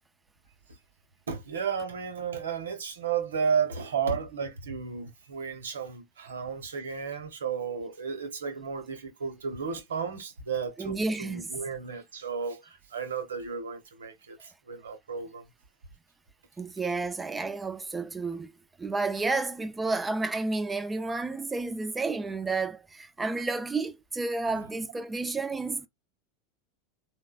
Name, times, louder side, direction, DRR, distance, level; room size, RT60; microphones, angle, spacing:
voice 1, 1.3-15.5 24.5-24.6, right 6 dB, 90° right, 0.8 m, -33 dB
voice 2, 10.8-11.5 16.6-18.5 18.8-25.9, right 3 dB, 15° right, 0.4 m, -31 dB
3.4 x 2.1 x 2.3 m
hypercardioid pair, 100°, 0 cm